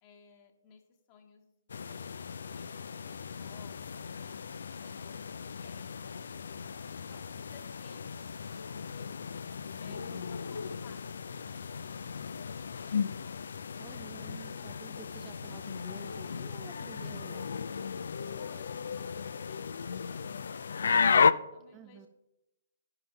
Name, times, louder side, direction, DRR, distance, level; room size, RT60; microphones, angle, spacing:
voice 1, 0.0-1.5 1.8-5.2 5.4-6.3 6.9-9.3 9.8-11.0 18.3-22.1, left 6 dB, 30° left, 1 dB, 1.5 m, -59 dB
sound 1, 1.7-21.3, left 6 dB, 60° left, 0.3 m, -34 dB
voice 2, 9.9-10.3 13.8-17.5 21.7-22.1, right 9 dB, 20° right, 6 dB, 0.5 m, -51 dB
11.5 x 10.5 x 2.2 m, 0.93 s
figure-of-eight pair, 130°, 0 cm